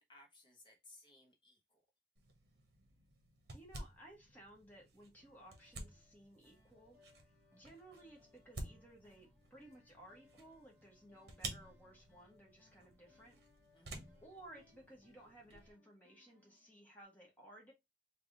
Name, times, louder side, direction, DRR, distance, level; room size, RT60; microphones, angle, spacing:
voice 1, 0.0-1.8 13.7-14.1, left 2 dB, 25° left, 0.9 m, -63 dB
sound 1, 2.2-15.7, right 2 dB, 60° right, 0.9 m, -53 dB
voice 2, 3.5-13.4 14.2-17.7, right 1 dB, 10° left, 1.2 m, -59 dB
sound 2, 5.2-17.0, left 4 dB, 10° right, 1.4 m, -71 dB
3.4 x 2.3 x 3.7 m
head